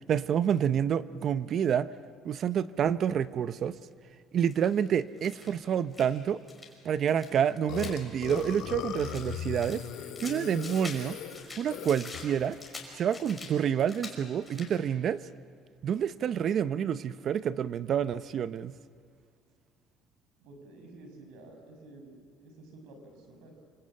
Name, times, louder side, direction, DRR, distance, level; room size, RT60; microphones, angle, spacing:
voice 1, 0.0-1.9 2.2-3.8 4.3-6.4 6.8-9.8 10.2-11.2 11.6-12.6 13.0-15.2 15.8-18.7, right 8 dB, 45° right, 15 dB, 0.7 m, -28 dB
sound 1, 4.5-4.7 5.2-6.2 6.5-6.7 7.1-9.2 9.6-11.0 11.3-13.5 13.8-14.2 14.4-14.8, left 3 dB, 15° left, 5.5 m, -45 dB
Burping eructation, 7.7-12.5, left 9 dB, 75° left, 2.4 m, -38 dB
voice 2, 20.4-23.5, right 2 dB, 85° right, 5 dB, 6.0 m, -51 dB
27.0 x 25.0 x 8.8 m, 2.3 s
cardioid pair, 130°, 0 cm